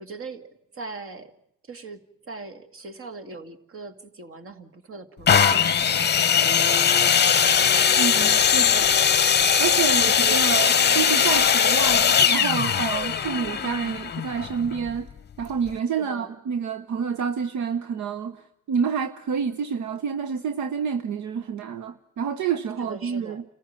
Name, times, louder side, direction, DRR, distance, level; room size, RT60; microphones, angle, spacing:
voice 1, 0.0-1.3 1.7-7.3 16.0-16.3 22.8-23.4, right 3 dB, 45° right, 9 dB, 2.2 m, -41 dB
sound 1, 5.3-15.0 15.7-15.8, left 7 dB, 35° left, 0.8 m, -20 dB
voice 2, 8.0-9.0 9.6-15.1 15.4-23.4, right 7 dB, 70° right, 10 dB, 1.0 m, -28 dB
28.5 x 15.0 x 9.0 m, 0.81 s
cardioid pair, 90°, 30 cm